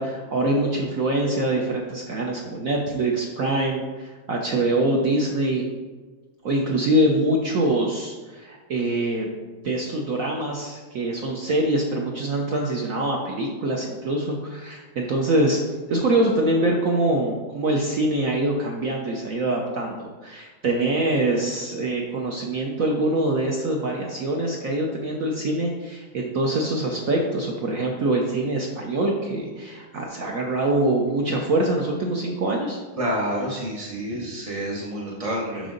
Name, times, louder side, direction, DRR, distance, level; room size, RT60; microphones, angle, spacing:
voice 1, 0.0-5.7 6.4-9.3 9.6-15.6 15.9-32.8, right 1 dB, 65° right, -1 dB, 0.8 m, -24 dB
voice 2, 33.0-35.7, equal, 40° right, -4 dB, 0.5 m, -28 dB
6.7 x 6.1 x 3.8 m, 1.4 s
omnidirectional pair, 2.3 m